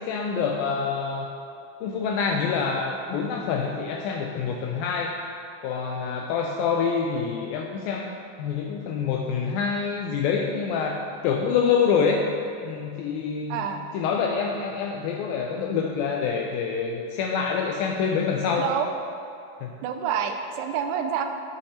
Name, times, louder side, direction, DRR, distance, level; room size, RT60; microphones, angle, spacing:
voice 1, 0.0-1.3 1.8-5.2 5.6-12.3 12.6-13.7 13.9-18.7 19.6-19.7, left 6 dB, 85° left, 1 dB, 2.1 m, -26 dB
voice 2, 13.5-13.8 18.6-18.9 19.8-21.2, right 8 dB, 90° right, 6 dB, 2.7 m, -27 dB
9.8 x 7.3 x 4.2 m, 2.5 s
omnidirectional pair, 4.7 m